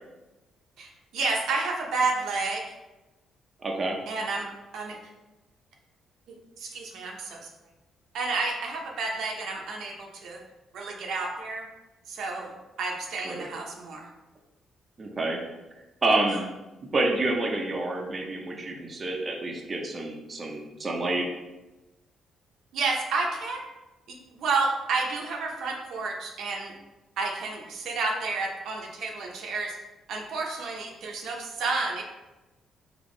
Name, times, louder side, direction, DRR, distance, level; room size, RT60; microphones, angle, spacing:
voice 1, 0.8-2.7 4.1-4.5 4.7-5.0 6.6-7.5 8.1-10.4 10.7-11.7 12.1-14.1 22.7-23.6 24.1-26.7 27.2-29.8 30.1-32.0, right 3 dB, 75° right, 0 dB, 0.7 m, -30 dB
voice 2, 3.6-4.0 13.2-13.5 15.0-15.4 16.0-16.5 16.9-21.2, right 2 dB, 35° right, 0 dB, 0.6 m, -28 dB
3.6 x 2.9 x 3.8 m, 1.1 s
cardioid pair, 90°, 0 cm